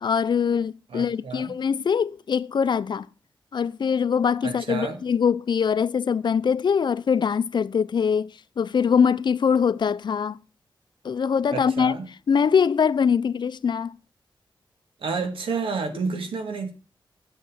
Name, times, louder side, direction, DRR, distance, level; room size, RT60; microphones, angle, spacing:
voice 1, 0.0-3.1 3.5-10.4 11.0-11.9 12.3-14.0, left 6 dB, 60° left, 0.5 m, -23 dB
voice 2, 0.9-1.5 4.4-5.0 11.5-12.1 15.0-16.7, right 4 dB, 90° right, 1.9 m, -30 dB
8.4 x 7.3 x 7.4 m
wide cardioid pair, 95°, 9 cm